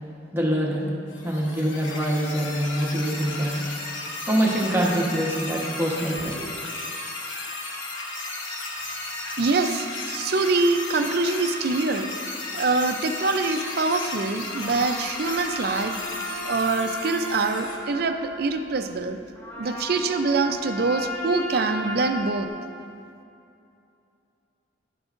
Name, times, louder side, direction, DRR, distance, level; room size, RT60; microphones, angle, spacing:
voice 1, 0.3-0.9 1.2-3.6 4.3-6.5, right 1 dB, 10° right, -3 dB, 1.0 m, -25 dB
sound 1, 1.1-17.8, left 2 dB, 75° left, 1.0 m, -34 dB
voice 2, 9.4-12.1 12.5-19.2 19.6-22.5, right 3 dB, 50° right, 7 dB, 0.5 m, -25 dB
sound 2, 14.5-22.5, left 1 dB, 10° left, 0.7 m, -35 dB
11.0 x 8.8 x 2.5 m, 2.6 s
head